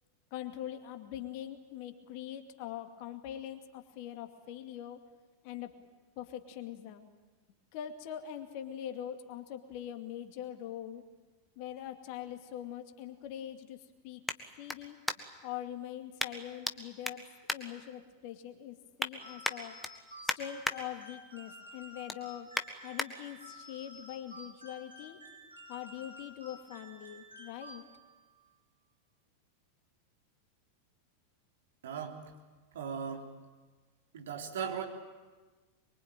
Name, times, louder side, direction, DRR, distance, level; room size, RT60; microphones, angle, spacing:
voice 1, 0.3-5.0 5.4-5.7 6.2-7.1 7.7-11.0 11.6-14.2 14.6-15.0 15.4-19.8 20.4-22.5 22.8-25.2 25.7-27.8, left 11 dB, 45° left, 6 dB, 2.3 m, -43 dB
sound 1, 11.4-15.5 16.2-16.8 17.0-18.3 18.7-19.1 19.4-20.8 21.2-21.5 21.8-23.1 23.6-23.7, left 2 dB, 5° left, 1.6 m, -38 dB
sound 2, 19.2-28.2, equal, 85° right, 4.2 m, -52 dB
voice 2, 31.8-32.2 32.7-33.2 34.1-34.8, right 7 dB, 60° right, 1 dB, 3.7 m, -37 dB
24.0 x 23.5 x 8.9 m, 1.3 s
figure-of-eight pair, 90°, 0 cm